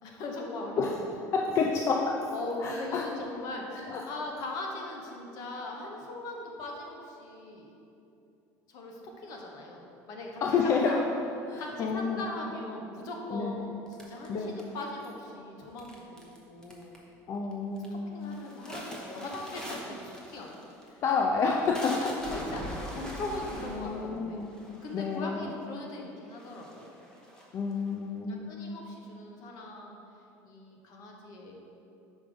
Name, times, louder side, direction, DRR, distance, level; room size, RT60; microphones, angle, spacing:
voice 1, 0.0-1.2 2.3-7.7 8.7-11.0 11.6-16.2 16.5-17.0 18.1-21.0 22.0-24.4 24.8-27.0 28.3-30.0 30.4-31.6, left 2 dB, 60° left, 1 dB, 1.1 m, -40 dB
voice 2, 1.3-2.3 2.6-3.1 3.9-4.0 10.4-11.0 11.5-12.2 13.3-13.5 14.3-14.5 17.3-18.1 21.0-22.1 23.8-24.5 24.9-25.5 27.5-28.5, left 4 dB, 40° left, 0 dB, 0.5 m, -29 dB
sound 1, 13.9-15.0 15.8-16.4 16.6-17.1 17.5-17.9 18.2-25.3 25.9-26.0 26.3-27.9, equal, 10° left, 0.9 m, -42 dB
5.3 x 4.9 x 5.1 m, 2.8 s
cardioid pair, 135°, 7 cm